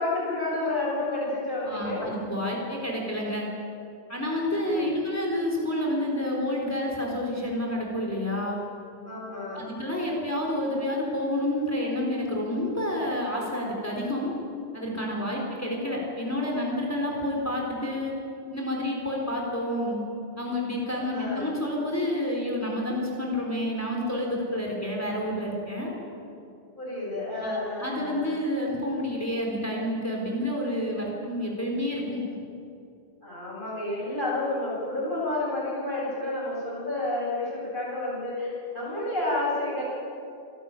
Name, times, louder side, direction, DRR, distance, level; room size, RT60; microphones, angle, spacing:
voice 1, 0.0-2.1 4.5-4.9 9.1-9.6 21.1-21.5 26.8-28.3 33.2-39.8, left 2 dB, 45° left, -6 dB, 8.2 m, -30 dB
voice 2, 1.6-3.5 4.1-8.6 9.5-14.3 14.7-18.2 18.5-20.0 20.4-26.0 27.4-32.2, left 1 dB, 15° left, -2 dB, 3.9 m, -29 dB
28.0 x 12.5 x 9.0 m, 2.6 s
omnidirectional pair, 1.2 m